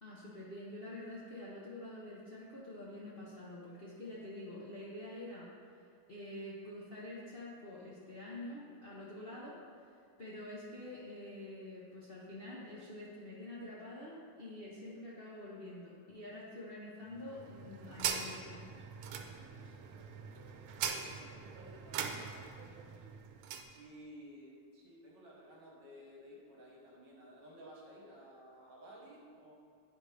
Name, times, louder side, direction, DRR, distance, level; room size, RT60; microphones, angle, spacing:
voice 1, 0.0-9.6 10.2-18.6, left 1 dB, 45° left, -7 dB, 0.7 m, -47 dB
sound 1, 17.1-23.7, right 7 dB, 85° right, 1.4 m, -42 dB
voice 2, 19.2-23.0 23.7-29.5, equal, 60° right, -3 dB, 1.7 m, -56 dB
9.4 x 5.2 x 3.2 m, 2.3 s
omnidirectional pair, 2.2 m